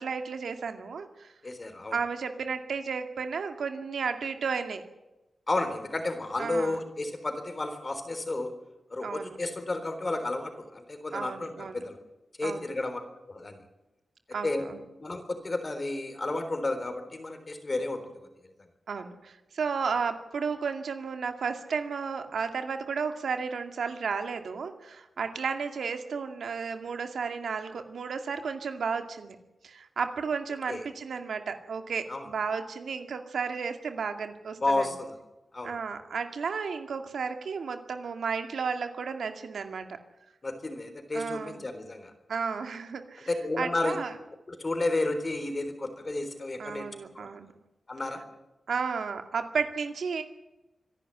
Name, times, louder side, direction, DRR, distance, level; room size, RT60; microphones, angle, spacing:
voice 1, 0.0-1.3 1.9-4.8 6.4-6.8 9.0-9.4 11.1-11.8 12.4-12.7 14.3-14.8 18.9-29.4 29.6-34.9 35.6-40.0 41.1-41.6 42.3-43.3 43.6-44.1 46.6-47.5 48.7-50.2, right 5 dB, 80° right, 6 dB, 2.2 m, -33 dB
voice 2, 1.4-2.0 5.5-8.5 8.9-12.0 12.4-13.0 13.3-13.6 14.4-14.7 15.0-18.0 30.7-30.8 32.1-32.3 34.6-35.1 35.5-35.8 40.4-42.1 43.3-44.0 44.5-46.9 47.1-47.3 47.9-48.2, left 2 dB, 30° left, 8 dB, 3.7 m, -32 dB
25.5 x 11.5 x 9.8 m, 0.99 s
wide cardioid pair, 130°, 0 cm